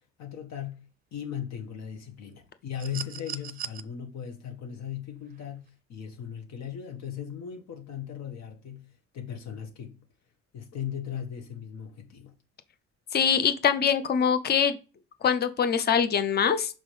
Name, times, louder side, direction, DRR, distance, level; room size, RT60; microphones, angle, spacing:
voice 1, 0.2-0.8 1.1-10.0 10.5-12.3, left 9 dB, 65° left, 1.6 m, -38 dB
sound 1, 2.8-3.8 5.3-5.5, right 9 dB, 30° right, 0.6 m, -38 dB
voice 2, 13.1-14.8 15.2-16.7, left 7 dB, 35° left, 0.8 m, -23 dB
6.1 x 3.7 x 4.8 m
cardioid pair, 145°, 29 cm